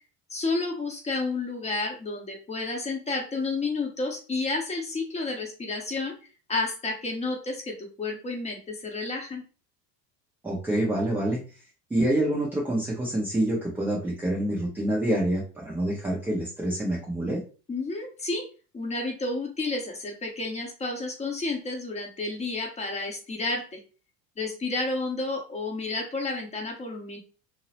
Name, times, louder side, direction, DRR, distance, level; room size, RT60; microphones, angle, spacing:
voice 1, 0.3-6.2 6.5-9.4 17.7-18.5 18.7-23.8 24.4-27.2, left 3 dB, 15° left, 1 dB, 0.8 m, -31 dB
voice 2, 10.4-11.6 11.9-17.4, right 1 dB, 5° right, -4 dB, 0.4 m, -27 dB
2.7 x 2.0 x 2.8 m, 0.35 s
figure-of-eight pair, 70°, 50 cm